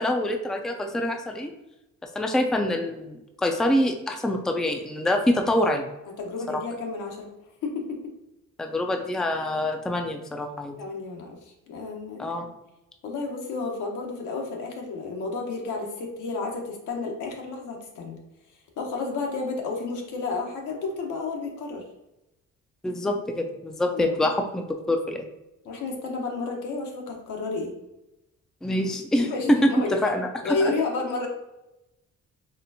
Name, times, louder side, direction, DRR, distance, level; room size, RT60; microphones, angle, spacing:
voice 1, 0.0-1.5 2.2-5.9 8.6-10.7 12.2-12.5 22.8-25.3 28.6-29.6 29.9-30.7, left 1 dB, ahead, 3 dB, 0.4 m, -25 dB
voice 2, 6.2-7.3 7.6-8.0 10.8-11.4 11.7-12.3 13.0-18.2 18.8-21.8 23.9-24.1 25.6-27.7 29.2-30.0 30.4-31.3, left 3 dB, 80° left, 1 dB, 1.0 m, -31 dB
4.2 x 3.4 x 2.6 m, 0.92 s
cardioid pair, 90°, 30 cm